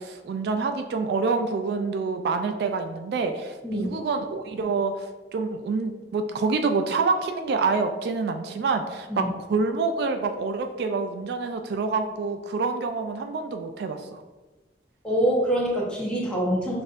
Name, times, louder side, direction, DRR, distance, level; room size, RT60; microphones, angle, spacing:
voice 1, 0.0-14.2, right 4 dB, 65° right, 7 dB, 0.3 m, -27 dB
voice 2, 15.0-16.8, right 1 dB, 5° left, -5 dB, 0.9 m, -25 dB
6.1 x 2.6 x 2.5 m, 1.2 s
head